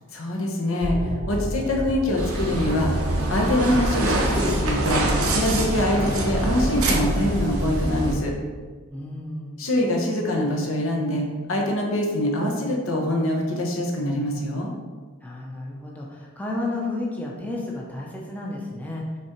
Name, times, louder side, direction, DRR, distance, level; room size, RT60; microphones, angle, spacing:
voice 1, 0.1-3.0 3.3-5.0 5.3-8.3 9.6-14.7, left 1 dB, 70° left, 0 dB, 1.1 m, -24 dB
sound 1, 0.8-7.4, equal, 55° right, 0.9 m, -33 dB
sound 2, 2.2-8.1, right 1 dB, 85° right, 1.0 m, -24 dB
voice 2, 8.9-9.7 15.2-19.2, left 2 dB, 5° left, -3 dB, 0.7 m, -32 dB
5.8 x 3.7 x 4.5 m, 1.4 s
head